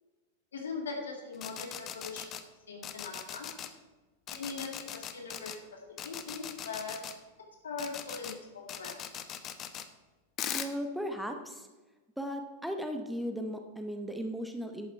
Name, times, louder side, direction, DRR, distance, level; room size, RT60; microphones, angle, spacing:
voice 1, 0.5-2.4 2.7-3.5 4.3-7.0 7.6-9.0, left 4 dB, 65° left, 1 dB, 2.4 m, -41 dB
sound 1, 1.3-2.4 2.8-3.7 4.3-5.6 6.0-7.1 7.8-8.3 8.7-9.8 10.4-10.7, left 10 dB, 30° left, 0.8 m, -39 dB
voice 2, 10.5-11.7 12.2-14.9, equal, ahead, 5 dB, 0.9 m, -36 dB
11.0 x 8.5 x 4.5 m, 1.2 s
figure-of-eight pair, 90°, 0 cm